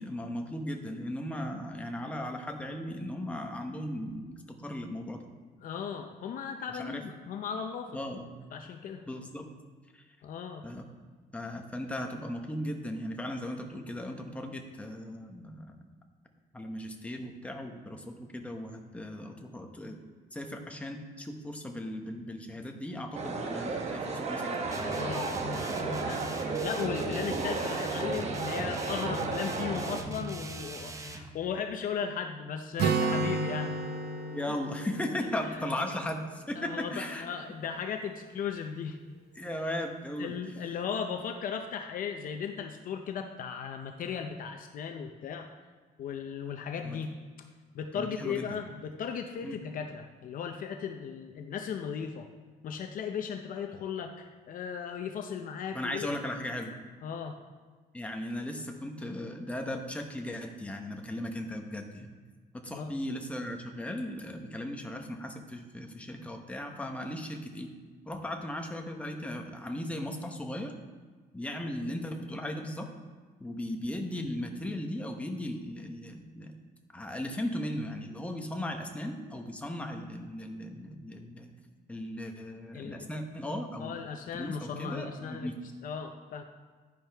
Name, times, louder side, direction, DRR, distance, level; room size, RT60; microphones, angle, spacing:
voice 1, 0.0-5.2 6.8-7.0 7.9-8.3 9.1-9.4 9.9-10.0 10.6-10.8 11.3-15.7 16.5-20.0 20.3-24.6 34.3-37.3 39.4-40.3 46.8-47.0 48.0-48.6 49.4-49.6 55.7-56.7 57.9-62.1 62.5-67.7 68.1-70.7 71.3-72.9 73.4-76.5 76.9-81.5 81.9-83.9 84.3-85.5, left 1 dB, 10° left, 3 dB, 0.9 m, -37 dB
voice 2, 5.6-8.0 8.5-9.1 10.2-10.6 25.0-26.3 26.6-33.8 35.5-35.7 36.6-39.0 40.2-45.5 46.0-47.1 47.7-52.3 52.6-56.1 57.0-57.4 62.7-62.9 82.7-83.1 83.8-85.5 85.8-86.4, left 7 dB, 60° left, 5 dB, 0.6 m, -36 dB
sound 1, 23.1-30.0, right 3 dB, 45° right, 1.0 m, -33 dB
sound 2, 24.7-31.3, right 2 dB, 20° right, 0.7 m, -40 dB
Acoustic guitar, 32.8-36.5, right 4 dB, 90° right, 0.9 m, -32 dB
10.5 x 10.0 x 3.4 m, 1.4 s
cardioid pair, 165°, 16 cm